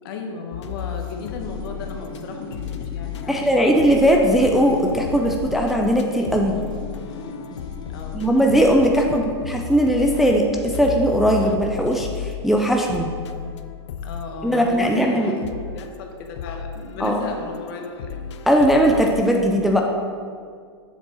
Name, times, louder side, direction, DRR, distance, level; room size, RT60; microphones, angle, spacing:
voice 1, 0.0-3.9 7.9-8.2 9.0-9.3 14.0-18.2, left 3 dB, 55° left, 3 dB, 0.9 m, -35 dB
sound 1, 0.5-2.2 2.5-19.2, left 8 dB, 80° left, 0.4 m, -34 dB
sound 2, 0.8-8.3, left 3 dB, 30° left, 0.9 m, -39 dB
voice 2, 3.3-6.6 8.1-13.1 14.4-15.3 17.0-17.2 18.5-19.8, equal, ahead, 1 dB, 0.3 m, -19 dB
7.3 x 3.6 x 4.0 m, 2.1 s
hypercardioid pair, 125°, 14 cm